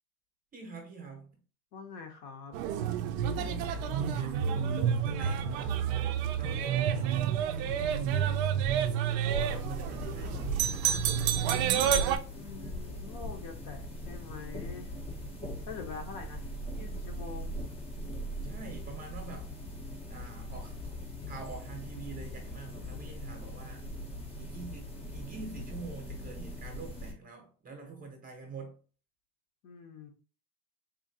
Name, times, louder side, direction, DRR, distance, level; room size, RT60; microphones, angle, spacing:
voice 1, 0.5-1.3 3.2-5.9 6.4-8.5 9.2-11.7 18.4-19.5 20.1-21.0 21.3-23.8 24.4-28.8, right 4 dB, 15° right, 0.8 m, -45 dB
voice 2, 1.7-2.5 12.3-15.0 15.7-16.5 16.7-17.6 29.6-30.1, left 5 dB, 40° left, 0.8 m, -45 dB
sound 1, 2.5-12.2, right 8 dB, 45° right, 0.4 m, -29 dB
sound 2, 9.4-27.1, left 1 dB, 10° left, 0.5 m, -41 dB
3.8 x 2.8 x 2.7 m
supercardioid pair, 125°, 49 cm